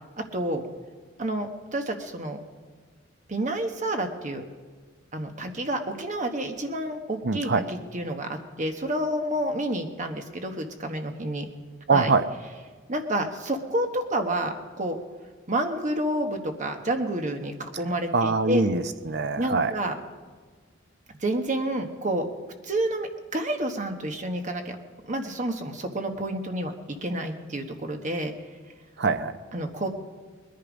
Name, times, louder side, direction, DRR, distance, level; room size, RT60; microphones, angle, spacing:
voice 1, 0.2-0.6 1.2-2.4 3.3-4.4 5.1-11.5 11.9-12.1 12.9-15.0 15.5-18.6 19.4-20.0 21.1-22.3 22.6-24.8 25.1-28.3 29.5-29.9, right 1 dB, 40° right, 5 dB, 1.2 m, -29 dB
voice 2, 7.2-7.6 11.9-12.2 18.1-19.7 29.0-29.4, right 4 dB, 55° right, 10 dB, 0.7 m, -23 dB
21.0 x 10.5 x 5.1 m, 1.5 s
head